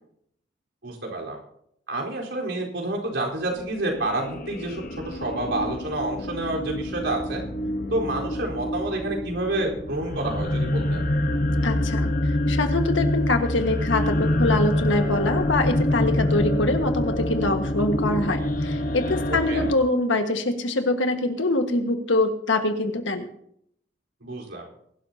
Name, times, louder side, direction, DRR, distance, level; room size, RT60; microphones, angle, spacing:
voice 1, 0.8-1.4 1.9-7.4 7.9-11.0 19.3-19.6 24.2-24.6, right 2 dB, 75° right, -1 dB, 4.3 m, -29 dB
sound 1, 3.5-19.7, left 1 dB, 45° left, 1.1 m, -26 dB
voice 2, 11.6-23.3, left 2 dB, 80° left, 6 dB, 1.7 m, -24 dB
23.0 x 12.5 x 2.9 m, 0.71 s
head